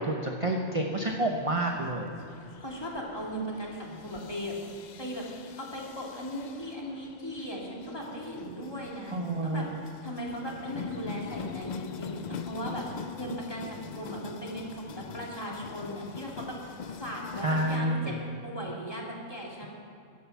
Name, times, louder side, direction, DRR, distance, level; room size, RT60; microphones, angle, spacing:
voice 1, 0.0-2.1 9.1-9.7 17.4-18.2, right 1 dB, 30° right, 2 dB, 0.8 m, -29 dB
sound 1, 1.0-17.8, left 6 dB, 60° left, 0.4 m, -43 dB
voice 2, 2.4-5.3 5.6-18.1 18.4-19.7, equal, 20° left, -3 dB, 2.3 m, -38 dB
11.5 x 10.0 x 7.1 m, 2.5 s
omnidirectional pair, 1.3 m